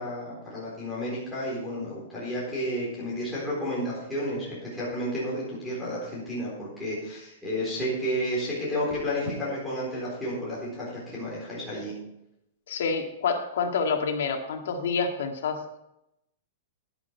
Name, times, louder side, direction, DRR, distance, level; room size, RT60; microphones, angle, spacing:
voice 1, 0.0-11.9, equal, 5° left, -8 dB, 4.0 m, -31 dB
voice 2, 12.7-15.6, left 5 dB, 70° left, 5 dB, 1.8 m, -28 dB
11.5 x 10.0 x 4.6 m, 0.83 s
supercardioid pair, 175°, 0 cm